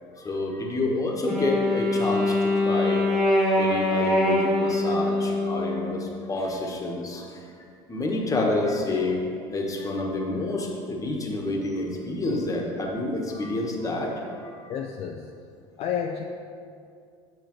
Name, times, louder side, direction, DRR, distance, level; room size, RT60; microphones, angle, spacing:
voice 1, 0.2-3.0 3.6-7.4 7.9-14.7, left 2 dB, 25° left, 0 dB, 1.3 m, -28 dB
Wind instrument woodwind instrument, 1.2-6.3, left 1 dB, ahead, 1.2 m, -24 dB
voice 2, 14.7-15.3 15.8-16.2, left 8 dB, 50° left, 2 dB, 0.5 m, -30 dB
8.5 x 6.3 x 3.1 m, 2.4 s
supercardioid pair, 90°, 14 cm